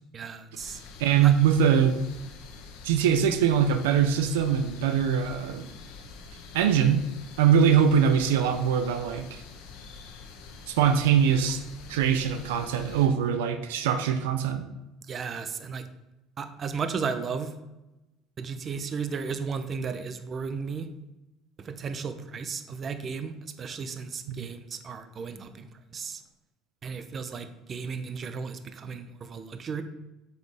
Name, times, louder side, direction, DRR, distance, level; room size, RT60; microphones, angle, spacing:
voice 1, 0.1-0.8 1.2-1.3 15.1-15.8 16.4-17.5 18.4-20.9 21.6-25.7 25.9-26.2 26.8-29.8, right 5 dB, 40° right, 10 dB, 0.7 m, -34 dB
sound 1, 0.6-13.1, left 5 dB, 80° left, 1.1 m, -46 dB
voice 2, 1.0-2.0 2.8-5.7 6.5-7.0 7.4-9.4 10.7-11.6 11.9-14.7 24.3-24.5, right 8 dB, 90° right, 8 dB, 0.5 m, -22 dB
7.7 x 5.4 x 3.5 m, 0.97 s
supercardioid pair, 90°, 0 cm